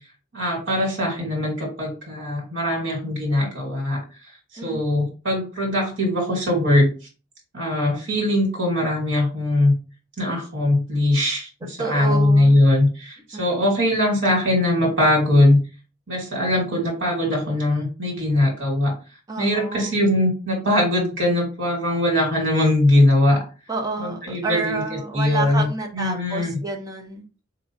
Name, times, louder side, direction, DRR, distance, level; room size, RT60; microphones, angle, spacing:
voice 1, 0.3-4.0 4.5-6.9 7.5-9.7 10.2-15.6 16.1-19.0 19.4-23.4 24.0-24.8 25.1-25.7 25.9-26.6, left 1 dB, 65° right, -2 dB, 1.8 m, -21 dB
voice 2, 11.8-12.6 13.3-13.4 19.3-20.0 23.7-27.3, right 3 dB, 20° right, 2 dB, 0.8 m, -29 dB
4.6 x 2.7 x 2.8 m, 0.33 s
head